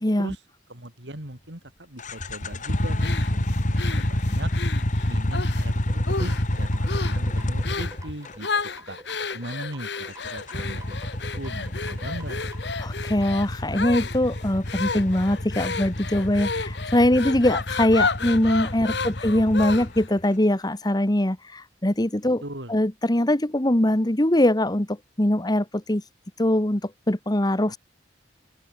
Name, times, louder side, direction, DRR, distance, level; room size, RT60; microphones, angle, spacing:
voice 1, 0.0-0.3 12.8-22.4 22.7-26.0 26.4-27.8, left 1 dB, 25° left, 1.6 m, -22 dB
voice 2, 0.7-4.5 5.1-8.5 8.9-9.0 9.3-11.0 11.3-12.5 18.9-19.1 22.4-22.8, right 1 dB, 85° right, 7.8 m, -39 dB
sound 1, 2.0-8.4 10.1-20.2, left 1 dB, 45° left, 2.2 m, -28 dB
sound 2, 3.0-5.7 6.1-6.5 6.9-7.2 7.6-8.0 8.4-20.1, left 4 dB, 70° left, 1.8 m, -32 dB
sound 3, 5.9-12.7, right 2 dB, 20° right, 3.6 m, -47 dB
head